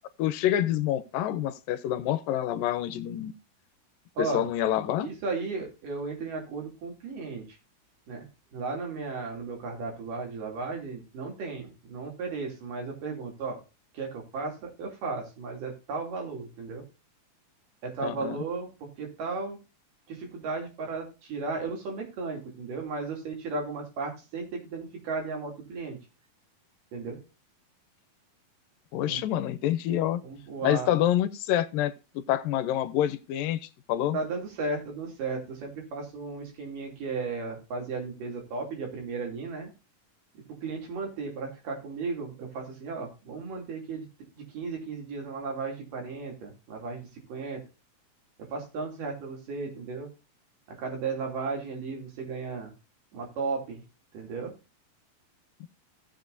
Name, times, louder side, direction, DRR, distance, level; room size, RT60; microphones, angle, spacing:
voice 1, 0.2-3.3 4.2-5.1 18.0-18.4 28.9-30.2 30.6-31.9 32.3-34.2, left 12 dB, 75° left, 2.3 m, -27 dB
voice 2, 5.0-7.6 8.1-8.3 8.5-13.6 13.9-16.8 17.8-19.6 20.1-26.0 26.9-27.2 29.1-29.2 30.2-31.0 34.1-39.7 40.3-44.1 44.4-47.6 48.5-50.1 50.8-52.7 53.1-53.8 54.1-54.5, right 4 dB, 60° right, 4.3 m, -35 dB
16.0 x 7.6 x 2.6 m
omnidirectional pair, 4.2 m